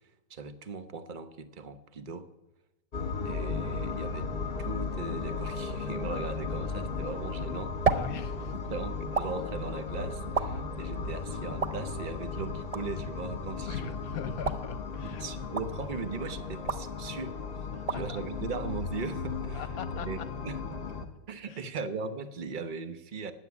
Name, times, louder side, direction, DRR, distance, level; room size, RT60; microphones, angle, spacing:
voice 1, 0.3-2.3 3.2-4.3 4.6-7.8 8.4-14.3 15.0-17.4 17.9-20.8 21.3-23.3, right 4 dB, 35° right, 11 dB, 0.9 m, -39 dB
sound 1, 2.9-21.1, left 4 dB, 35° left, 1.5 m, -36 dB
sound 2, 7.2-19.4, right 5 dB, 55° right, 0.4 m, -37 dB
voice 2, 7.9-8.5 13.6-15.2 17.7-18.2 19.5-20.3 21.5-21.6, left 8 dB, 60° left, 13 dB, 1.2 m, -41 dB
19.5 x 8.3 x 8.4 m, 1.0 s
omnidirectional pair, 1.8 m